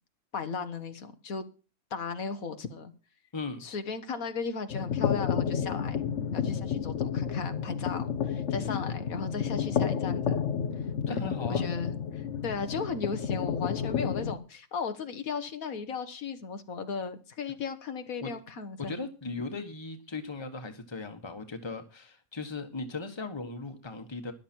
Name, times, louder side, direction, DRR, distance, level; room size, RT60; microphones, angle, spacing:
voice 1, 0.3-1.4 1.9-2.9 3.6-6.0 6.3-10.5 11.1-11.2 11.5-19.0, left 5 dB, 75° left, 1.7 m, -36 dB
voice 2, 3.3-3.6 11.1-11.7 18.2-18.3 18.8-24.3, left 3 dB, 20° left, 1.5 m, -38 dB
sound 1, 4.7-14.4, left 7 dB, 60° left, 1.2 m, -31 dB
13.0 x 11.0 x 4.5 m
omnidirectional pair, 1.5 m